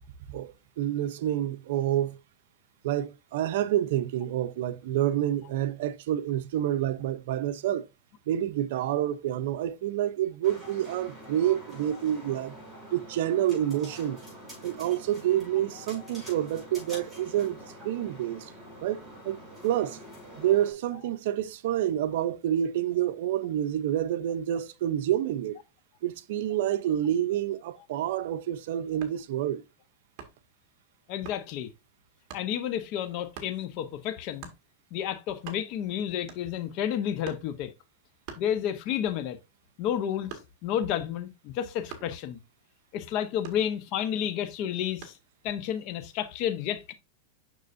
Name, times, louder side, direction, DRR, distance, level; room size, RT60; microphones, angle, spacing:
voice 1, 0.3-2.2 2.8-7.9 8.3-12.6 12.9-14.2 14.6-18.5 18.8-20.0 20.4-25.6 26.0-29.6, right 11 dB, 65° right, 0.6 m, -28 dB
sound 1, 10.4-20.7, right 1 dB, ahead, 4.8 m, -46 dB
sound 2, 29.0-29.3 30.2-30.5 31.2-31.5 32.3-32.5 33.3-33.6 34.4-34.6 35.1-35.2 35.3-35.9 36.3-36.7 37.2-37.6 38.2-39.0 39.4-40.8 41.9-42.2 43.4-44.1 45.0-45.3, right 7 dB, 40° right, 1.7 m, -45 dB
voice 2, 31.1-31.7 32.3-34.5 34.9-37.7 38.4-39.4 39.8-42.4 42.9-45.2 45.4-46.9, left 10 dB, 45° left, 0.8 m, -31 dB
6.7 x 6.2 x 2.6 m
supercardioid pair, 145°, 0 cm